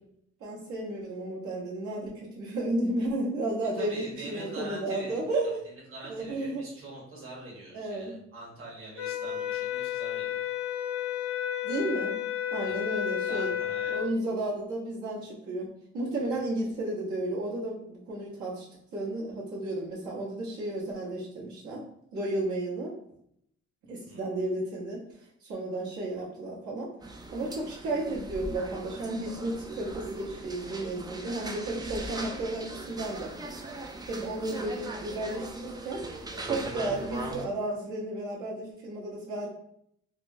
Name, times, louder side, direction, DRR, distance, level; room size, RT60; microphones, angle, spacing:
voice 1, 0.4-5.7 6.1-6.6 7.7-8.1 9.2-9.3 11.6-12.2 12.5-13.5 13.9-15.7 15.9-18.6 18.9-21.8 22.1-22.9 23.9-25.0 25.4-26.9 27.3-33.3 34.1-36.0 36.4-39.5, right 2 dB, 75° right, -8 dB, 1.2 m, -33 dB
voice 2, 3.7-5.2 5.9-10.5 12.6-12.8 13.3-14.1 24.1-24.2, right 1 dB, 45° right, -4 dB, 1.2 m, -44 dB
sound 1, 9.0-14.1, left 10 dB, 50° left, 0.5 m, -32 dB
sound 2, 27.0-37.5, right 2 dB, 15° right, 0.3 m, -39 dB
3.3 x 2.1 x 2.6 m, 0.72 s
cardioid pair, 90°, 30 cm